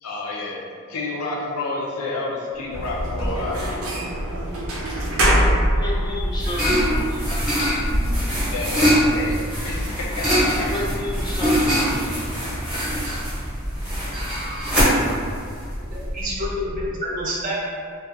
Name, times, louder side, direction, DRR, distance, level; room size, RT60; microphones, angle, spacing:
voice 1, 0.0-3.6 8.5-10.7, left 2 dB, 85° left, -3 dB, 0.5 m, -30 dB
sound 1, 2.5-16.9, equal, 70° left, 0.9 m, -32 dB
sound 2, 2.7-14.9, equal, 85° right, 0.5 m, -27 dB
voice 2, 5.7-7.2 10.6-12.2, left 1 dB, 20° left, -5 dB, 0.4 m, -31 dB
sound 3, 5.8-16.4, equal, 5° right, 0.7 m, -23 dB
voice 3, 15.9-17.6, equal, 40° right, -5 dB, 0.5 m, -28 dB
2.4 x 2.3 x 2.5 m, 2.2 s
head